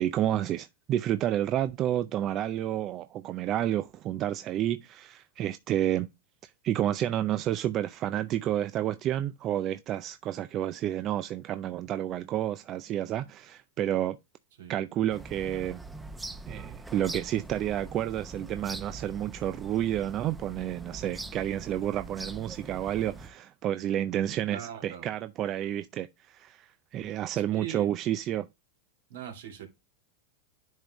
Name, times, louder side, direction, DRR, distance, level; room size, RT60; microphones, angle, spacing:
voice 1, 0.0-6.1 6.4-14.2 14.7-15.8 16.5-28.5, right 12 dB, 40° right, 0.4 m, -30 dB
sound 1, 15.1-23.3, right 2 dB, 10° right, 0.8 m, -43 dB
voice 2, 24.5-25.0 27.5-27.9 29.1-29.7, right 9 dB, 75° right, 2.3 m, -40 dB
10.5 x 3.7 x 3.0 m
hypercardioid pair, 115°, 0 cm